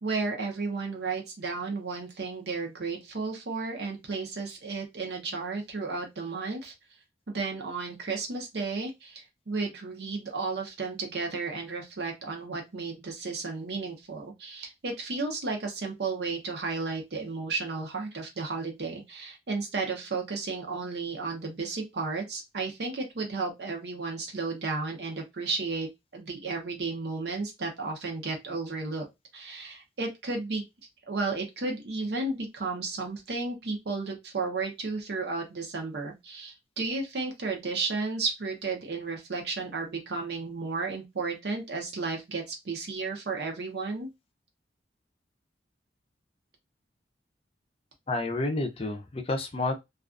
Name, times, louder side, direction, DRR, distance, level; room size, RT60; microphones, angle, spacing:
voice 1, 0.0-6.7 7.3-29.1 29.3-30.6 31.1-44.1, right 3 dB, 65° right, 0.6 m, -33 dB
voice 2, 48.1-49.8, left 2 dB, 35° left, 0.5 m, -30 dB
2.4 x 2.3 x 2.4 m
head